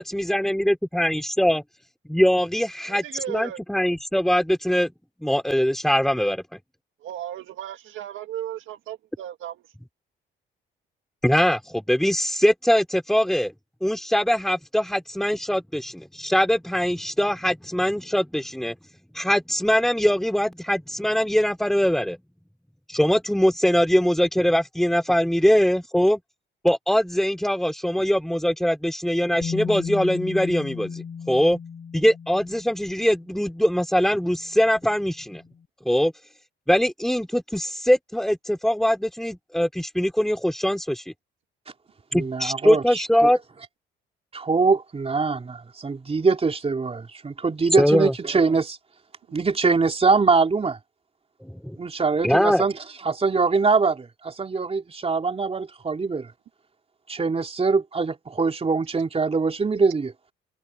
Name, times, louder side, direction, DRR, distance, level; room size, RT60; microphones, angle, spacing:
voice 1, 0.0-1.6 2.1-4.9 5.2-6.4 11.2-13.5 13.8-18.7 19.1-22.2 22.9-26.2 26.6-31.6 31.9-35.4 35.8-36.1 36.7-41.1 42.1-43.4 47.8-48.1 51.4-51.8 52.2-52.6, equal, ahead, 2.9 m, -22 dB
voice 2, 3.0-3.6 7.0-9.6, right 12 dB, 80° right, 1.8 m, -35 dB
Bass guitar, 29.4-33.3 34.5-34.6, left 6 dB, 45° left, 3.8 m, -34 dB
voice 3, 42.1-43.3 44.3-48.8 49.3-50.8 51.8-52.7 53.0-56.3 57.1-60.1, right 4 dB, 30° right, 3.6 m, -23 dB
cardioid pair, 90°, 20 cm